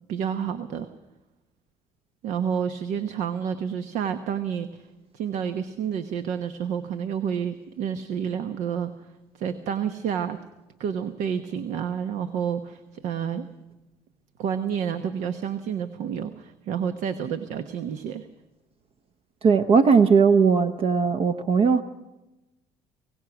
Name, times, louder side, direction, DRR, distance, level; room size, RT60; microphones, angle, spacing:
voice 1, 0.1-0.9 2.2-4.9 5.1-8.9 9.3-10.4 10.8-13.5 14.4-18.3, right 8 dB, 75° right, 9 dB, 1.1 m, -29 dB
voice 2, 19.4-21.8, right 5 dB, 50° right, 8 dB, 0.9 m, -18 dB
25.0 x 18.0 x 6.1 m, 0.98 s
cardioid pair, 105°, 12 cm